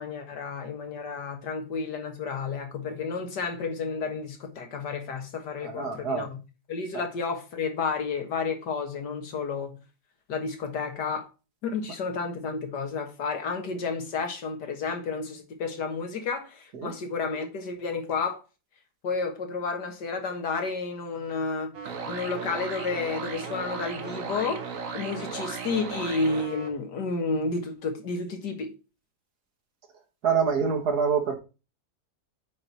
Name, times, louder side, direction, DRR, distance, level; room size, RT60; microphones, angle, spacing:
voice 1, 0.0-6.4 6.7-9.8 10.3-11.3 11.6-18.4 19.0-21.7 22.1-28.7, left 4 dB, 80° left, 2.1 m, -31 dB
voice 2, 5.6-6.3 6.9-7.1 16.7-16.9 30.2-31.4, right 6 dB, 70° right, 2.1 m, -26 dB
sound 1, 21.7-26.7, right 5 dB, 55° right, 1.4 m, -36 dB
8.7 x 4.4 x 4.6 m
omnidirectional pair, 1.8 m